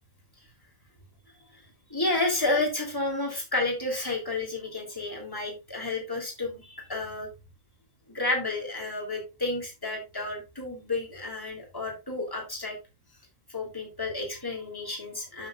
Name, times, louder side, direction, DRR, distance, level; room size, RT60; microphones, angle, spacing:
voice 1, 1.9-7.3 8.1-12.7 13.5-15.5, left 2 dB, 15° left, 0 dB, 3.3 m, -31 dB
12.0 x 6.5 x 2.5 m, 0.26 s
omnidirectional pair, 1.5 m